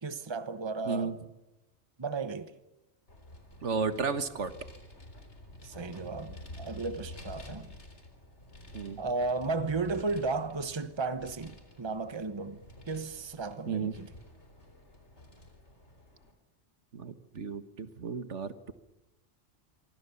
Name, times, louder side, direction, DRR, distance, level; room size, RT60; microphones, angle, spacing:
voice 1, 0.0-1.1 2.0-2.5 5.6-7.7 9.0-12.6 12.9-14.1, right 3 dB, 25° right, 1.1 m, -34 dB
voice 2, 0.8-1.2 3.6-4.5 8.7-9.0 13.7-14.0 16.9-18.7, right 5 dB, 85° right, 1.8 m, -33 dB
Vehicle, 3.1-16.3, left 1 dB, 75° left, 4.2 m, -50 dB
26.5 x 24.0 x 7.1 m
omnidirectional pair, 1.2 m